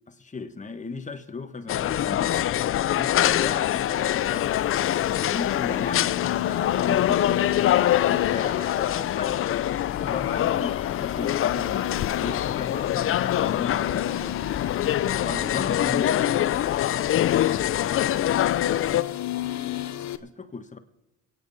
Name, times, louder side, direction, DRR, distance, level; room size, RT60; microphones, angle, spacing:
voice 1, 0.1-2.5 3.0-4.6 5.1-7.5 8.0-14.4 15.2-16.8 20.2-20.8, left 4 dB, 25° left, 1.3 m, -36 dB
sound 1, 1.7-19.0, left 12 dB, 45° left, 0.4 m, -24 dB
sound 2, 3.3-20.2, left 12 dB, 65° left, 0.9 m, -34 dB
23.5 x 9.2 x 4.1 m
cardioid pair, 90°, 30 cm